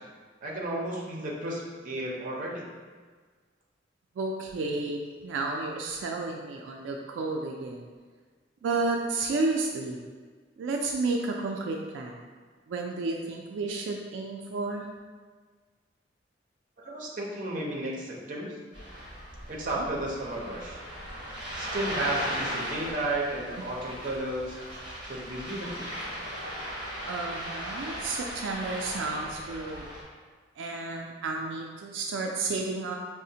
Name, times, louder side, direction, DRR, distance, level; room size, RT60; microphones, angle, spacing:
voice 1, 0.4-2.6 16.8-18.5 19.5-20.8 21.5-24.6 25.1-25.9, right 1 dB, 45° right, -2 dB, 0.6 m, -33 dB
voice 2, 4.2-7.9 8.6-10.0 10.6-12.2 12.7-14.8 19.6-19.9 27.1-29.9 30.6-32.9, right 3 dB, 85° right, 0 dB, 0.3 m, -32 dB
Ocean, 18.7-30.0, equal, 30° right, 0.9 m, -37 dB
4.8 x 2.0 x 2.7 m, 1.5 s
head